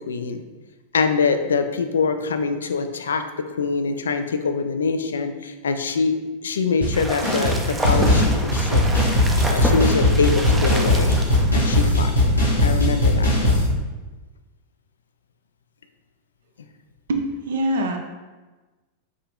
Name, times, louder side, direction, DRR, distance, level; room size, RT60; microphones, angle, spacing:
voice 1, 0.1-0.4 0.9-8.9 9.5-11.2 11.5-12.1 12.6-13.6, left 5 dB, 70° left, 7 dB, 0.3 m, -24 dB
sound 1, 6.8-6.9 7.2-7.6 7.8-13.7, left 1 dB, 90° left, 1.0 m, -19 dB
sound 2, 6.9-11.9, right 1 dB, 15° right, 0.5 m, -29 dB
voice 2, 17.1-18.0, right 1 dB, 60° right, 4 dB, 0.5 m, -24 dB
4.8 x 2.7 x 3.5 m, 1.2 s
figure-of-eight pair, 90°, 0 cm